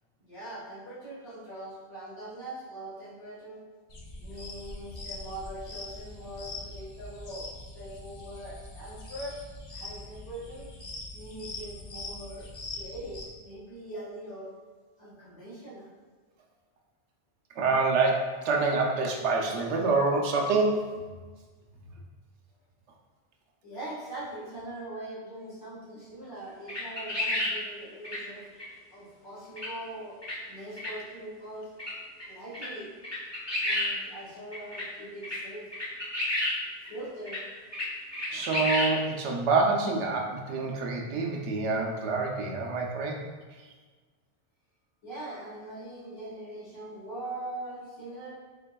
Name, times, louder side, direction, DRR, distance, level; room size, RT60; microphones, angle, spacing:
voice 1, 0.2-3.6 4.2-7.5 7.7-9.4 9.7-10.7 11.1-12.4 12.8-14.5 15.0-15.9 23.6-28.4 28.9-30.2 30.5-31.7 32.3-32.9 33.6-35.7 36.9-37.4 45.0-48.3, right 1 dB, 65° left, -9 dB, 1.8 m, -41 dB
sound 1, 3.9-13.2, left 2 dB, 45° left, 0.4 m, -42 dB
voice 2, 17.6-20.9 38.3-43.2, right 3 dB, 85° right, 0 dB, 0.9 m, -26 dB
sound 2, 26.7-27.5 28.0-28.2 28.6-28.7 29.6-29.7 30.2-30.3 30.8-30.9 31.8-31.9 32.2-32.3 32.5-32.7 33.0-33.9 34.5-34.8 35.2-35.4 35.7-36.6 36.8-36.9 37.3-37.4 37.7-37.9 38.1-38.9, left 1 dB, 25° left, 1.0 m, -30 dB
4.3 x 3.4 x 2.2 m, 1.4 s
omnidirectional pair, 1.1 m